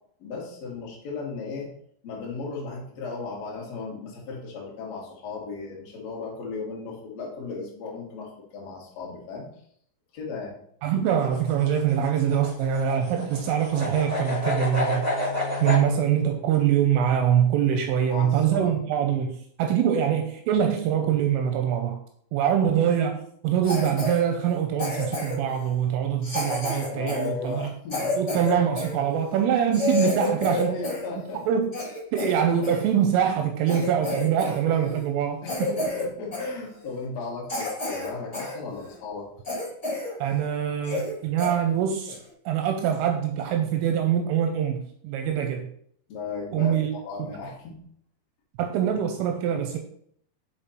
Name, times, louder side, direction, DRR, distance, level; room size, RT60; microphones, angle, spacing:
voice 1, 0.2-1.7 2.0-9.5 10.1-10.6 18.0-18.7 26.9-28.4 30.0-31.4 35.4-39.3 46.1-46.7 47.0-47.8, left 4 dB, 50° left, -4 dB, 2.1 m, -35 dB
voice 2, 10.8-15.1 15.6-22.0 22.3-27.7 28.2-30.8 31.5-31.7 32.1-35.7 40.2-42.2 42.5-45.7 46.5-46.9 47.2-47.3 48.6-49.8, right 9 dB, 85° right, 4 dB, 3.1 m, -24 dB
sound 1, 11.1-15.8, left 1 dB, 25° right, 0.3 m, -30 dB
sound 2, 13.6-17.7, left 4 dB, 90° left, 3.5 m, -39 dB
Cough, 23.6-24.2 24.8-25.5 26.2-28.9 29.4-29.5 29.7-31.1 31.4-32.8 33.3-33.4 33.7-34.6 34.8-35.1 35.4-36.1 36.3-36.5 37.0-37.1 37.5-38.5 38.9-39.0 39.4-40.1 40.4-40.5 40.8-41.1 41.4-41.5 42.1-42.3, left 2 dB, 20° left, 2.1 m, -30 dB
6.8 x 5.2 x 4.4 m, 0.65 s
omnidirectional pair, 6.0 m